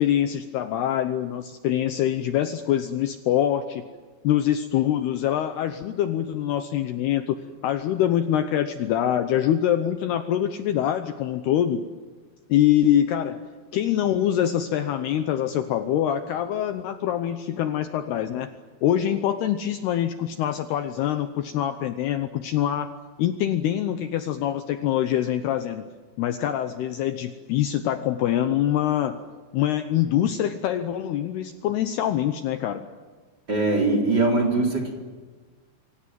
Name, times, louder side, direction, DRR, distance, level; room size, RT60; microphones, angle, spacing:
voice 1, 0.0-3.8 4.2-7.4 7.6-11.8 12.5-13.4 13.7-18.5 18.8-22.9 23.2-25.9 26.2-29.2 29.5-32.8, left 11 dB, 75° left, 9 dB, 2.6 m, -24 dB
voice 2, 33.5-34.9, right 2 dB, 25° right, 4 dB, 3.7 m, -21 dB
27.5 x 25.0 x 7.6 m, 1.4 s
omnidirectional pair, 5.4 m